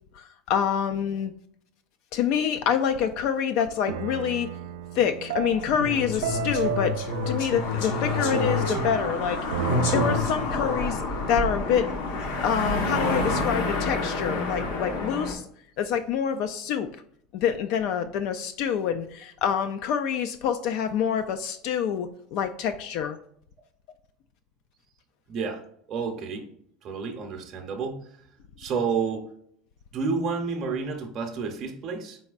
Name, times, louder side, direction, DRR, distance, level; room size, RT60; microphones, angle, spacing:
voice 1, 0.1-1.3 2.1-4.5 4.9-7.0 7.3-9.4 9.9-11.0 11.3-11.9 12.4-15.5 15.8-16.9 17.3-23.2, left 8 dB, 60° left, 8 dB, 0.3 m, -26 dB
sound 1, 2.7-3.1 3.9-10.2, right 9 dB, 90° right, 0.3 m, -33 dB
sound 2, 5.5-15.3, left 2 dB, 75° left, 1.0 m, -28 dB
voice 2, 25.3-25.6 25.9-26.4 26.8-28.1 28.6-29.3 29.9-32.2, right 5 dB, 35° right, 2 dB, 0.7 m, -30 dB
4.3 x 4.1 x 2.4 m, 0.68 s
supercardioid pair, 145°, 0 cm